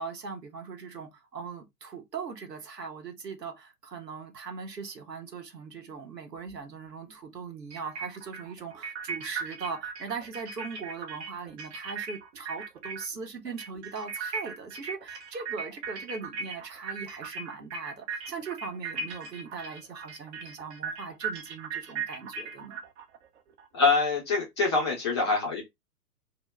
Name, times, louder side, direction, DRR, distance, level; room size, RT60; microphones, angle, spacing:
voice 1, 0.0-22.8, right 5 dB, 90° right, 0.9 m, -40 dB
sound 1, 6.5-6.6 7.7-13.2 13.5-23.7, right 5 dB, 45° right, 0.7 m, -38 dB
voice 2, 23.7-25.6, left 4 dB, 20° left, 0.4 m, -25 dB
2.1 x 2.1 x 3.2 m
figure-of-eight pair, 115°, 48 cm